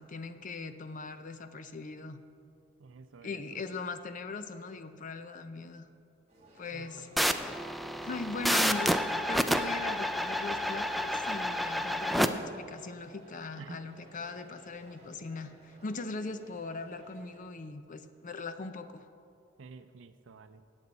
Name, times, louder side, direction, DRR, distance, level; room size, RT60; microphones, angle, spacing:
voice 1, 0.0-2.2 3.2-5.9 6.6-7.1 8.0-9.0 9.3-19.1, left 3 dB, 45° left, 10 dB, 0.6 m, -40 dB
voice 2, 2.8-3.6 6.7-7.0 13.6-13.8 19.6-20.6, right 4 dB, 75° right, 11 dB, 0.5 m, -50 dB
sound 1, 6.3-17.4, equal, 35° right, 2.3 m, -56 dB
sound 2, 7.2-12.3, equal, ahead, 0.3 m, -29 dB
17.5 x 7.1 x 4.1 m, 2.4 s
head